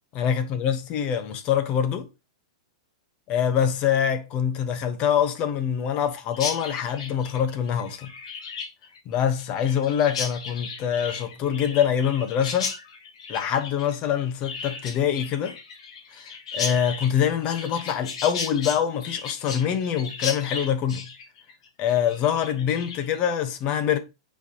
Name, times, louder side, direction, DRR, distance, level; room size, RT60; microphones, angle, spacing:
voice 1, 0.1-2.1 3.3-8.1 9.0-12.7 13.3-15.6 16.1-21.1 21.8-24.0, left 9 dB, 40° left, 1.1 m, -25 dB
Chirp tweet, 6.3-23.2, left 5 dB, 75° left, 1.8 m, -35 dB
8.0 x 4.6 x 2.9 m
hypercardioid pair, 130°, 3 cm